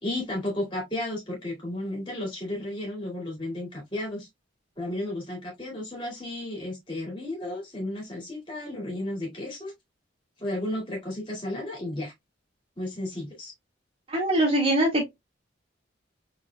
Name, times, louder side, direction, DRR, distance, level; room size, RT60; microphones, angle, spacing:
voice 1, 0.0-4.3 4.8-9.7 10.4-12.1 12.8-13.5, left 1 dB, 25° left, 2.4 m, -33 dB
voice 2, 14.1-15.1, right 1 dB, 30° right, 1.7 m, -22 dB
4.3 x 4.1 x 2.2 m
head